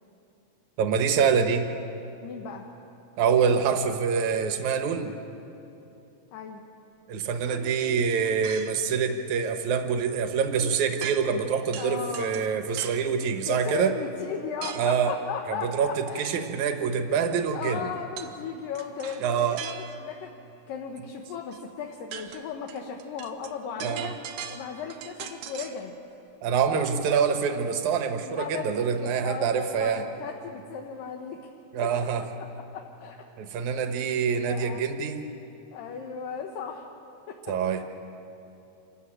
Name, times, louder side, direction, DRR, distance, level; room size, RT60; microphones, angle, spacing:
voice 1, 0.8-1.7 3.2-5.1 7.1-13.9 14.8-15.1 15.7-17.9 19.2-19.6 23.8-24.1 26.4-30.1 31.7-32.3 33.4-35.2 37.5-37.8, right 6 dB, 65° right, 6 dB, 1.9 m, -25 dB
voice 2, 2.2-2.6 6.3-6.6 11.8-12.4 13.5-16.2 17.5-20.3 20.7-24.2 24.5-25.9 28.3-31.4 32.7-33.2 34.0-34.2 34.5-34.9 35.7-36.8 37.3-37.4 37.7-37.8, left 6 dB, 70° left, 2 dB, 2.4 m, -36 dB
sound 1, 8.4-8.9 11.0-11.5 11.7-13.1 14.6-15.0 18.2-18.4 18.7-20.2 21.5-21.6 21.9-25.8, right 9 dB, 85° right, 1.7 m, -40 dB
26.0 x 15.0 x 8.9 m, 2.9 s
omnidirectional pair, 4.8 m